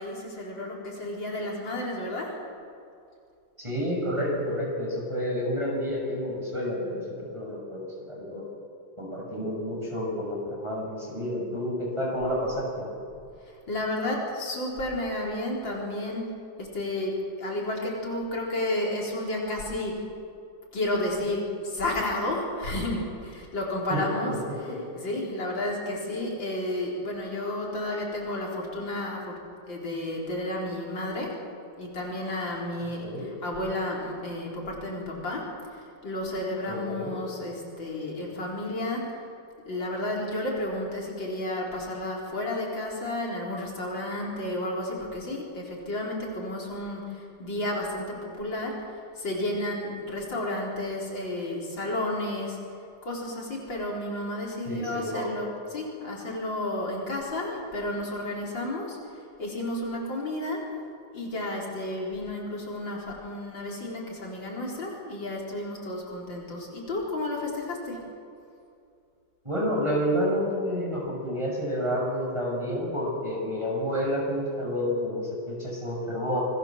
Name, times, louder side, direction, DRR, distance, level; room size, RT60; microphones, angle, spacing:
voice 1, 0.0-2.4 13.7-16.2 16.6-20.0 20.7-24.3 24.9-29.4 29.7-31.4 31.8-39.2 39.7-52.6 53.0-60.6 61.1-68.0, left 1 dB, 70° left, -2 dB, 4.8 m, -32 dB
voice 2, 3.6-8.4 9.0-12.8 23.9-24.4 24.6-24.8 33.0-33.3 36.6-37.1 54.6-55.3 69.4-76.5, equal, 15° right, -2 dB, 6.4 m, -29 dB
27.0 x 20.5 x 7.4 m, 2.5 s
omnidirectional pair, 2.1 m